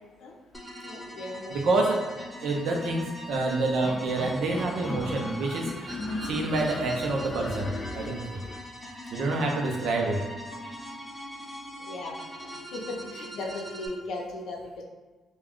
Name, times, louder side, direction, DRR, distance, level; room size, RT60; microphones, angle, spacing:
sound 1, 0.5-13.9, equal, 5° left, 0.7 m, -41 dB
voice 1, 0.8-1.8 11.8-12.2 12.7-14.8, left 2 dB, 75° left, -2 dB, 0.6 m, -37 dB
voice 2, 1.5-2.0 2.4-8.4 9.1-10.2, right 2 dB, 75° right, 0 dB, 0.6 m, -28 dB
sound 2, 3.8-8.6, left 2 dB, 30° left, 0.3 m, -37 dB
2.3 x 2.2 x 3.5 m, 1.3 s
cardioid pair, 90°, 0 cm